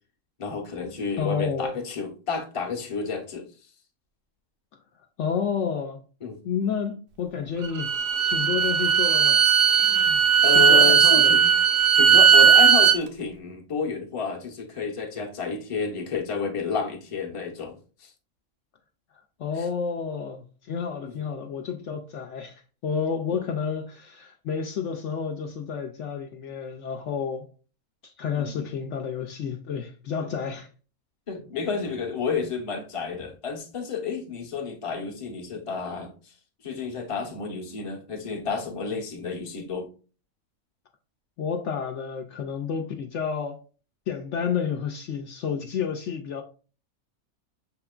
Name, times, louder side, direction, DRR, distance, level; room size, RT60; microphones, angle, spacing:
voice 1, 0.4-3.4 6.2-6.4 10.4-11.5 11.9-18.1 19.6-19.7 21.0-21.1 23.3-23.4 28.3-28.7 30.2-30.3 31.3-36.3 36.6-39.9, left 5 dB, 30° left, 0.7 m, -31 dB
voice 2, 1.2-1.8 5.2-6.0 6.4-7.9 8.2-11.3 19.4-27.4 28.2-30.7 41.4-43.6 44.1-46.4, left 6 dB, 70° left, 0.8 m, -30 dB
Bowed string instrument, 7.6-13.0, right 7 dB, 80° right, 1.0 m, -17 dB
5.8 x 3.6 x 2.3 m
omnidirectional pair, 1.4 m